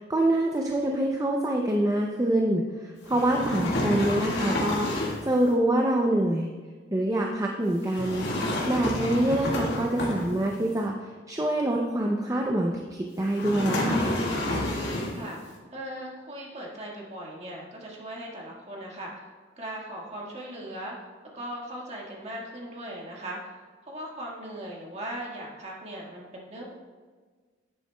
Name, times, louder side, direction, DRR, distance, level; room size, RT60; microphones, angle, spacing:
voice 1, 0.0-6.5 6.9-8.3 8.7-14.2, right 1 dB, 15° right, 0 dB, 0.5 m, -26 dB
sound 1, 3.1-5.3 7.9-10.6 13.3-15.3, left 1 dB, 65° left, 1.8 m, -29 dB
voice 2, 15.1-19.3 19.6-20.9 21.3-26.7, right 1 dB, 35° right, -3 dB, 1.6 m, -39 dB
10.5 x 7.7 x 2.2 m, 1.5 s
head